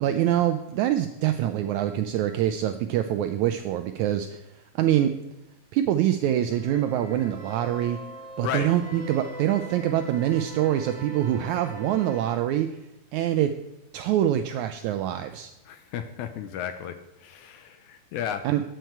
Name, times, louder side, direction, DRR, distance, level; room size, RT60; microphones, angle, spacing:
voice 1, 0.0-4.4 4.8-5.1 5.7-8.0 8.4-12.8 13.1-13.5 13.9-15.5 18.4-18.6, right 11 dB, 80° right, 9 dB, 1.7 m, -25 dB
sound 1, 6.5-12.4, right 2 dB, 45° right, 1.7 m, -41 dB
voice 2, 15.7-17.0 17.2-18.4, left 9 dB, 75° left, 10 dB, 1.9 m, -33 dB
12.5 x 9.1 x 4.6 m, 0.94 s
omnidirectional pair, 3.9 m